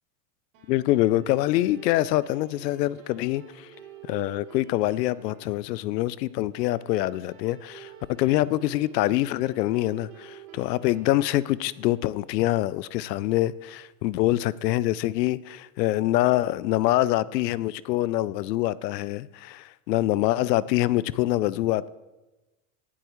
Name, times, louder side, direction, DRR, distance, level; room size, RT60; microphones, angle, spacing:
sound 1, 0.5-13.3, right 7 dB, 65° right, 3.4 m, -50 dB
voice 1, 0.7-3.7 4.1-7.9 8.2-21.9, left 16 dB, 80° left, 0.6 m, -25 dB
18.0 x 8.5 x 3.1 m
supercardioid pair, 120°, 48 cm